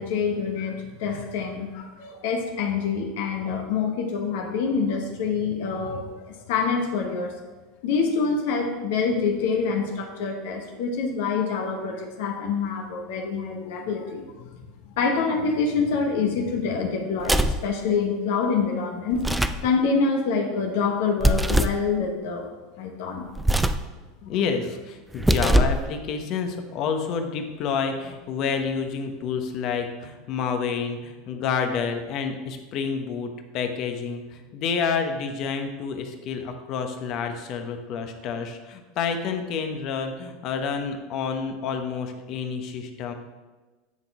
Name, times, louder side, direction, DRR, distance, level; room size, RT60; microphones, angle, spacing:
voice 1, 0.0-7.3 7.8-19.2 19.6-22.5 22.8-23.3, left 5 dB, 75° left, 3 dB, 1.2 m, -26 dB
sound 1, 17.2-17.7 19.1-19.7 21.2-21.8 23.4-23.9 25.1-25.9, right 1 dB, 5° right, 0.4 m, -21 dB
voice 2, 24.2-43.1, left 6 dB, 55° left, 6 dB, 1.0 m, -29 dB
9.6 x 3.9 x 4.8 m, 1.2 s
hypercardioid pair, 100°, 0 cm